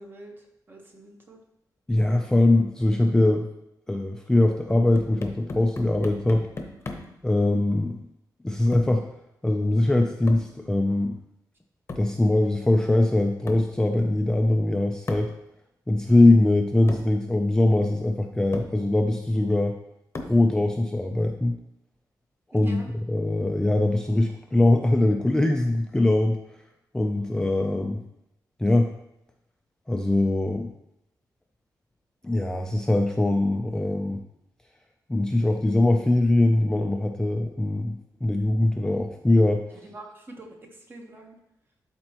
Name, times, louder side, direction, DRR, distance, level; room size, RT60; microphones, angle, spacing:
voice 1, 0.0-1.4 16.2-16.5 22.5-22.9 27.1-27.4 39.8-41.4, right 2 dB, 30° right, 1 dB, 1.1 m, -45 dB
voice 2, 1.9-3.5 3.9-6.5 7.2-8.0 8.4-9.1 9.4-11.2 12.0-15.3 15.9-19.8 20.2-21.6 22.5-22.8 23.1-26.4 26.9-28.0 28.6-28.9 29.9-30.7 32.2-34.2 35.1-39.7, left 2 dB, 10° left, 2 dB, 0.4 m, -22 dB
sound 1, 4.7-7.2 8.7-9.1 10.3-10.6 11.9-12.2 13.5-13.8 15.1-15.4 16.3-16.4 16.9-17.2 18.0-18.1 18.5-18.8 20.1-20.5, left 2 dB, 35° left, 0.9 m, -37 dB
12.0 x 4.3 x 2.9 m, 0.83 s
wide cardioid pair, 170°, 7 cm